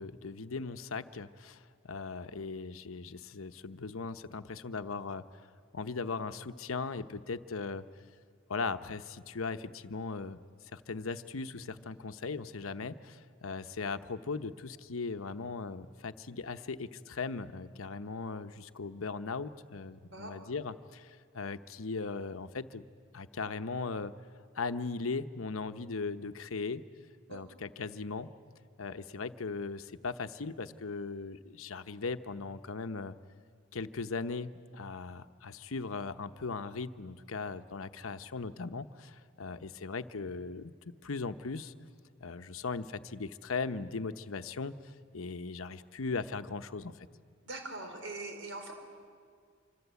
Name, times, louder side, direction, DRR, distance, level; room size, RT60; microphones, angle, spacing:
voice 1, 0.0-5.2 5.7-7.8 8.5-10.4 10.7-22.8 23.1-24.1 24.5-26.8 27.3-28.3 28.8-33.1 33.7-41.7 42.2-46.9, left 4 dB, 80° left, 10 dB, 0.9 m, -38 dB
voice 2, 47.5-48.7, right 2 dB, 65° right, 4 dB, 4.7 m, -41 dB
26.0 x 25.5 x 8.3 m, 2.1 s
head